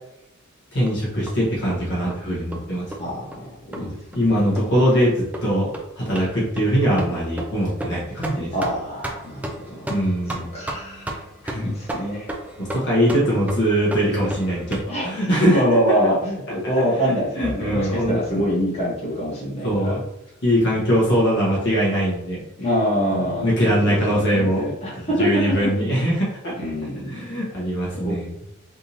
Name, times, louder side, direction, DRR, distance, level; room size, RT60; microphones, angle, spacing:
voice 1, 0.7-2.9 3.8-8.5 9.9-10.5 11.4-11.7 12.6-15.8 17.0-18.5 19.6-20.0 20.4-22.4 23.1-24.7 25.2-26.5 27.1-28.3, equal, 55° left, -6 dB, 1.1 m, -22 dB
sound 1, 0.9-14.8, right 1 dB, 5° right, 0.3 m, -35 dB
voice 2, 3.0-4.7 8.5-9.9 10.5-11.2 11.6-12.3 14.9-19.9 22.6-25.7 26.6-27.4 27.9-28.1, equal, 30° left, -6 dB, 1.2 m, -25 dB
3.5 x 2.6 x 2.8 m, 0.84 s
head